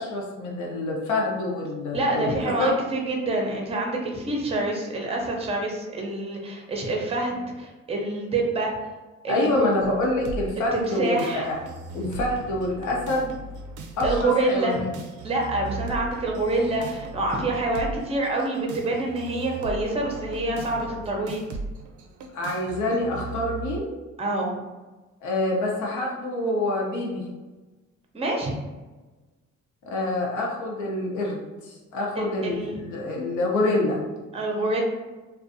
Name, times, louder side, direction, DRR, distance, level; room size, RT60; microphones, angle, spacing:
voice 1, 0.0-2.7 9.3-11.5 11.9-13.3 14.0-14.9 22.3-23.9 25.2-27.2 29.9-34.0, left 2 dB, 75° left, -2 dB, 0.8 m, -26 dB
voice 2, 1.9-8.8 9.2-9.7 10.7-11.5 14.0-14.9 15.2-21.4 24.2-24.6 28.1-28.6 32.1-32.8 34.3-34.8, right 2 dB, 20° right, 0 dB, 0.6 m, -26 dB
sound 1, 9.8-23.8, right 3 dB, 75° right, 0.4 m, -38 dB
2.5 x 2.3 x 2.6 m, 1.2 s
cardioid pair, 90°, 30 cm